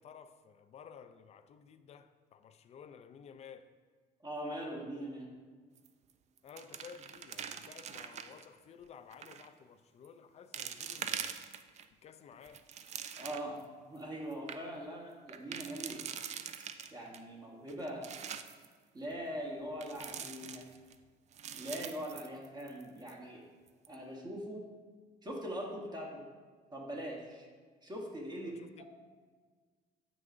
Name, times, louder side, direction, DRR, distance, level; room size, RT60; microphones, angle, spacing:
voice 1, 0.0-3.7 6.4-11.4 12.0-12.7 28.4-28.8, left 7 dB, 40° left, 0.4 m, -54 dB
voice 2, 4.2-5.3 13.2-16.0 16.9-18.2 18.9-20.7 21.5-23.4 23.9-24.7 25.2-26.2 26.7-27.5 27.8-28.8, equal, 25° right, 1.0 m, -42 dB
sound 1, 5.8-6.1 6.4-8.4 9.1-9.5 10.0-10.1 10.5-11.8 12.3-13.6 14.0-14.1 14.3-14.6 15.3-17.2 17.7-18.7 19.8-20.9 21.3-22.8 23.1-23.2 23.7-23.9, right 8 dB, 40° right, 0.4 m, -43 dB
7.8 x 6.0 x 2.5 m
cardioid pair, 110°, 17 cm